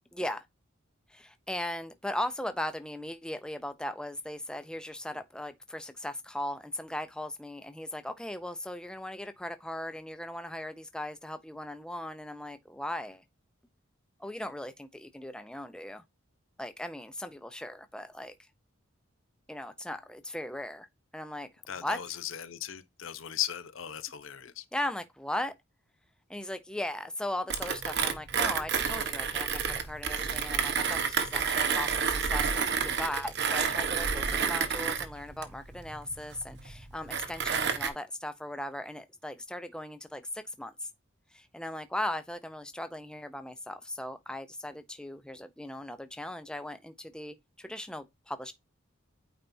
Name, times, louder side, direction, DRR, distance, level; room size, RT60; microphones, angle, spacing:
voice 1, 0.1-0.4 1.1-13.2 14.2-16.0 16.6-18.4 19.5-20.9 21.1-21.5 21.8-22.2 24.7-25.5 26.3-40.9 41.3-48.5, left 1 dB, 5° left, 0.5 m, -38 dB
voice 2, 21.7-24.6, left 11 dB, 70° left, 0.7 m, -37 dB
Mechanisms, 27.5-37.9, right 6 dB, 55° right, 1.1 m, -30 dB
8.9 x 4.2 x 2.7 m
head